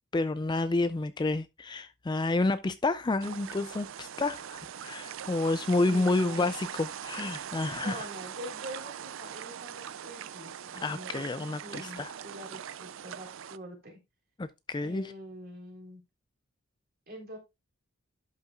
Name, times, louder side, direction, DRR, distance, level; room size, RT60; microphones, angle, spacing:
voice 1, 0.1-8.1 10.8-12.1 14.4-15.1, left 2 dB, 20° left, 0.3 m, -29 dB
sound 1, 3.2-13.6, right 9 dB, 60° right, 0.4 m, -41 dB
voice 2, 5.8-6.4 7.8-14.0 14.8-16.0 17.1-17.4, equal, 45° right, 3.8 m, -45 dB
11.5 x 6.7 x 2.4 m
head